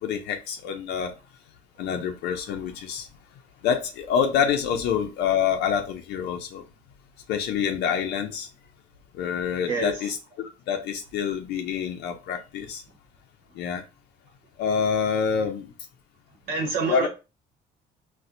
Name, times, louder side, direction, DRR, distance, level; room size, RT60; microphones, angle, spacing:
voice 1, 0.0-1.1 1.8-3.1 3.6-6.7 7.3-8.5 9.1-12.8 13.5-13.8 14.6-15.7 16.9-17.1, left 7 dB, 80° left, 0.5 m, -27 dB
voice 2, 16.5-17.1, right 3 dB, 70° right, 1.0 m, -26 dB
4.1 x 2.2 x 2.5 m
cardioid pair, 110°, 17 cm